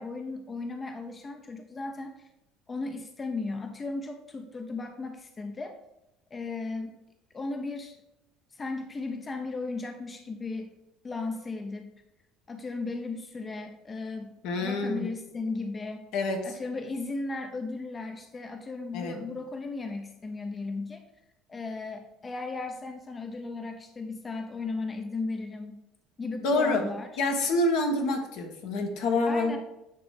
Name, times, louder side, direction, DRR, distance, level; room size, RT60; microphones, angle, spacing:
voice 1, 0.0-2.3 2.7-5.8 6.3-7.0 7.3-8.0 8.5-10.7 11.0-11.9 12.5-14.3 14.6-16.0 16.4-21.0 21.5-25.8 26.2-27.1 29.3-29.6, left 3 dB, 30° left, 5 dB, 0.7 m, -36 dB
voice 2, 14.4-15.1 16.1-16.4 18.9-19.2 26.4-26.8 27.2-29.5, left 2 dB, 65° left, 3 dB, 1.3 m, -27 dB
9.1 x 3.1 x 5.1 m, 0.89 s
hypercardioid pair, 65°, 0 cm